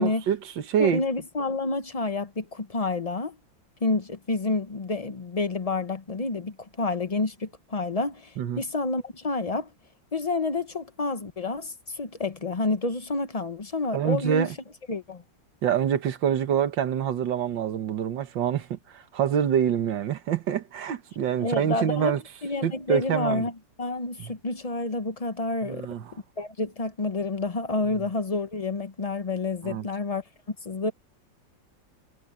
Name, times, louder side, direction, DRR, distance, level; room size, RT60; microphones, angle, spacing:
voice 1, 0.0-1.0 8.4-8.6 13.9-14.6 15.6-22.2 22.6-23.4 24.2-24.3 25.6-26.1 29.6-29.9, right 9 dB, 75° right, 1.9 m, -26 dB
voice 2, 0.8-3.4 3.8-9.7 10.1-14.5 14.9-15.2 21.4-22.2 22.4-23.5 23.8-25.9 26.4-30.9, left 3 dB, 40° left, 0.5 m, -29 dB
omnidirectional pair, 2.0 m